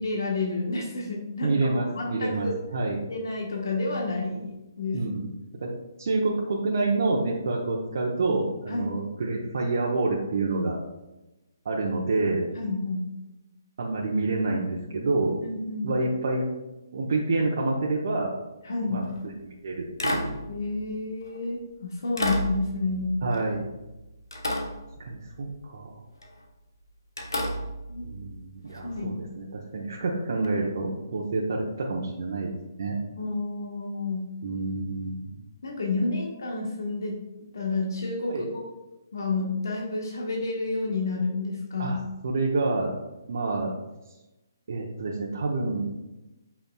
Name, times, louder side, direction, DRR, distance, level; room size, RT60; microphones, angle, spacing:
voice 1, 0.0-1.7 1.9-2.6 3.1-5.0 8.7-9.0 12.5-13.0 15.4-15.9 18.6-19.1 20.5-23.2 27.9-28.1 28.8-29.2 33.2-34.3 35.6-37.2 37.5-38.6 39.1-42.0, left 3 dB, 65° left, -1 dB, 1.3 m, -30 dB
voice 2, 1.4-3.0 4.9-5.3 5.6-5.7 6.0-10.8 11.6-12.4 13.8-15.3 15.8-16.5 16.9-18.3 18.9-20.3 23.2-23.7 25.0-26.0 28.0-33.0 34.4-35.4 38.3-38.5 41.8-42.0 42.2-43.0 43.3-43.7 44.7-45.9, right 3 dB, 55° right, -3 dB, 0.9 m, -28 dB
sound 1, 18.9-19.3 20.0-21.5 22.2-24.0 24.3-25.5 26.2-26.4 27.2-29.0 30.4-30.5, equal, 85° left, 1.1 m, -33 dB
7.9 x 5.7 x 2.3 m, 1.0 s
figure-of-eight pair, 140°, 2 cm